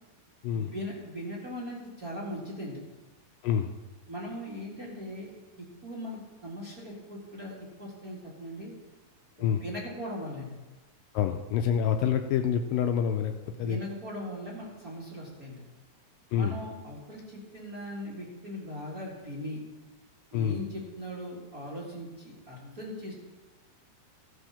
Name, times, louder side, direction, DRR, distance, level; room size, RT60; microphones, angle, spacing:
voice 1, 0.5-2.8 4.1-5.3 5.8-7.5 7.8-8.7 9.4-10.5 13.6-15.6 16.3-19.6 20.3-23.1, equal, 30° right, -6 dB, 1.7 m, -39 dB
voice 2, 11.1-13.8 16.3-16.6 20.3-20.6, left 8 dB, 80° left, 5 dB, 2.1 m, -27 dB
15.0 x 6.3 x 5.8 m, 1.2 s
omnidirectional pair, 4.3 m